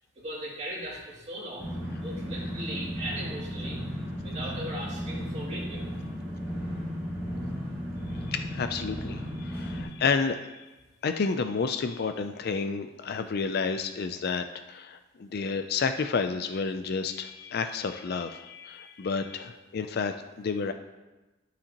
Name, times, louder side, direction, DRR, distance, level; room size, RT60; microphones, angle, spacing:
voice 1, 0.1-3.8 4.2-6.0, right 1 dB, 35° right, -6 dB, 2.7 m, -38 dB
sound 1, 1.6-9.8, equal, 15° right, 2.4 m, -35 dB
voice 2, 8.3-10.7 11.0-20.7, left 5 dB, 50° left, 8 dB, 0.4 m, -30 dB
11.5 x 7.0 x 2.9 m, 1.1 s
head